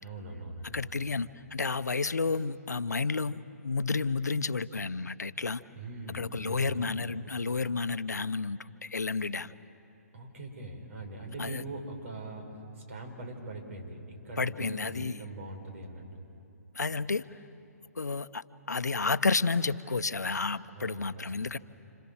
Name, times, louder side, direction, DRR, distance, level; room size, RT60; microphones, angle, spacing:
voice 1, 0.0-1.1 5.7-6.8 10.1-16.0 20.7-21.5, right 2 dB, 55° right, 3 dB, 5.9 m, -42 dB
voice 2, 0.7-5.6 6.1-9.5 11.4-11.6 14.4-15.2 16.7-17.4 18.0-21.6, left 4 dB, 90° left, 13 dB, 0.8 m, -31 dB
29.5 x 27.0 x 7.3 m, 2.8 s
hypercardioid pair, 140°, 9 cm